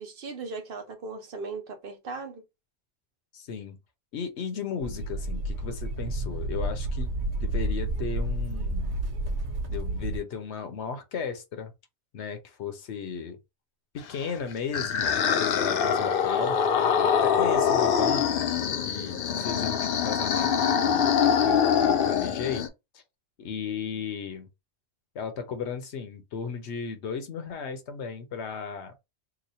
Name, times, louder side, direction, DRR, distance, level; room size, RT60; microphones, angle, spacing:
voice 1, 0.0-2.4, right 4 dB, 60° right, 0.9 m, -38 dB
voice 2, 3.3-3.8 4.1-9.0 9.7-11.7 12.1-13.4 13.9-16.6 17.0-18.5 18.8-22.7 22.9-23.0 23.4-24.5 25.1-28.9, left 6 dB, 80° left, 1.0 m, -35 dB
sound 1, 4.8-10.2, right 1 dB, 80° right, 1.2 m, -30 dB
sound 2, 14.2-22.7, left 7 dB, 60° left, 0.7 m, -24 dB
3.0 x 2.2 x 4.0 m
omnidirectional pair, 1.1 m